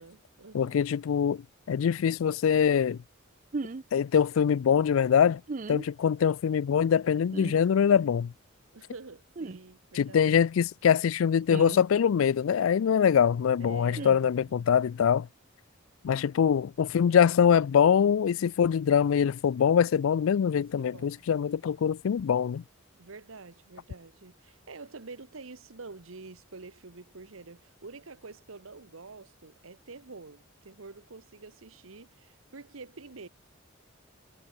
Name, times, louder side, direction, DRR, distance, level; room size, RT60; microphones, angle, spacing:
voice 1, 0.0-0.8 8.7-10.3 13.6-14.7 20.8-21.2 23.0-33.3, right 3 dB, 75° right, 1.2 m, -47 dB
voice 2, 0.5-1.4 1.7-3.0 3.9-5.4 5.7-8.3 9.9-15.3 16.0-22.6, left 7 dB, 75° left, 0.4 m, -23 dB
sound 1, 3.5-3.8 5.5-5.9 7.3-7.6 9.4-9.6 11.5-11.8 14.0-14.2, right 3 dB, 40° right, 0.5 m, -36 dB
head